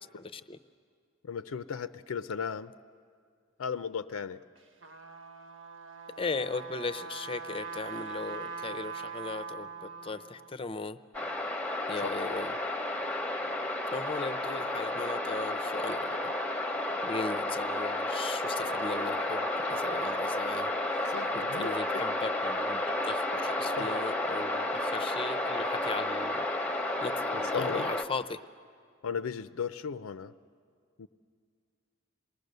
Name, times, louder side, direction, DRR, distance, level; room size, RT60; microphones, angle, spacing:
voice 1, 0.2-0.6 6.2-11.0 11.9-12.5 13.9-16.6 17.0-21.1 21.3-26.4 26.7-28.4, left 4 dB, 25° left, 13 dB, 0.5 m, -38 dB
voice 2, 1.2-2.7 3.6-4.4 12.0-12.1 21.1-22.0 23.7-23.9 27.3-27.9 29.0-30.3 31.0-31.1, left 6 dB, 80° left, 12 dB, 0.5 m, -36 dB
Trumpet, 4.6-10.5, right 5 dB, 70° right, 1.4 m, -42 dB
sound 1, 11.1-28.0, left 1 dB, 5° left, 0.9 m, -32 dB
28.0 x 20.0 x 6.7 m, 2.2 s
head